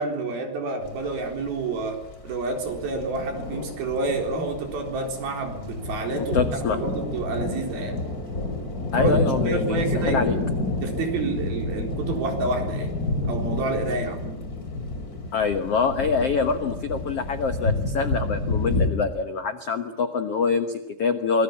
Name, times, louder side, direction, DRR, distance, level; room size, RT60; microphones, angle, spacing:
voice 1, 0.0-8.1 9.0-10.3 10.8-12.9 13.3-14.5, right 3 dB, 60° right, 4 dB, 5.8 m, -29 dB
sound 1, 0.8-18.9, left 2 dB, 25° left, 2.9 m, -29 dB
voice 2, 6.2-6.8 8.9-10.4 15.3-21.4, left 5 dB, 85° left, 9 dB, 1.3 m, -25 dB
25.5 x 21.0 x 8.6 m, 0.91 s
omnidirectional pair, 4.8 m